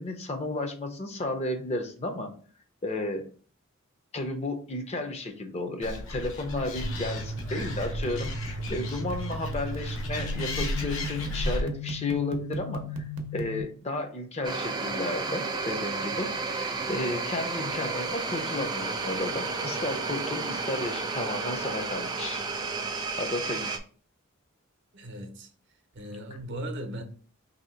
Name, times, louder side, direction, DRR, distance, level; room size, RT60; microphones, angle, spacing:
voice 1, 0.0-2.3 2.8-3.3 4.1-13.0 13.3-22.4 23.2-23.7, left 2 dB, 30° left, 0.5 m, -33 dB
Animal, 5.8-11.6, left 1 dB, 70° left, 0.8 m, -35 dB
sound 1, 6.8-13.6, equal, 90° right, 0.6 m, -35 dB
sound 2, 14.4-23.8, right 4 dB, 20° right, 0.3 m, -32 dB
voice 2, 24.9-25.5 25.9-27.0, right 1 dB, 60° right, 0.7 m, -37 dB
3.0 x 2.7 x 4.3 m
head